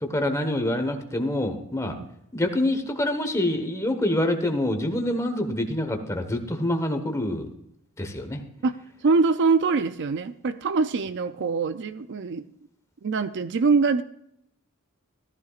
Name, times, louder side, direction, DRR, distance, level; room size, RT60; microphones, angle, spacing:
voice 1, 0.0-2.0 2.3-7.5 8.0-8.4, left 1 dB, 15° left, 6 dB, 1.2 m, -26 dB
voice 2, 9.0-12.5 13.0-14.0, right 4 dB, 55° right, 12 dB, 0.5 m, -23 dB
14.0 x 13.0 x 2.5 m, 0.73 s
head